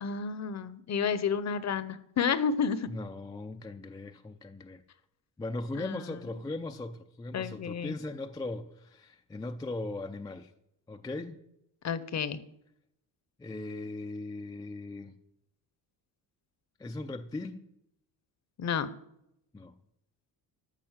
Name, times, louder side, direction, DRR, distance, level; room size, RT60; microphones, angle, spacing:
voice 1, 0.0-2.9 5.8-6.0 7.3-8.0 11.8-12.4 18.6-18.9, left 6 dB, 40° left, 0.8 m, -31 dB
voice 2, 2.9-4.8 5.4-10.5 10.9-11.4 13.4-15.2 16.8-17.7 19.5-19.7, left 2 dB, 10° left, 0.4 m, -38 dB
13.5 x 6.1 x 7.3 m
cardioid pair, 150°, 43 cm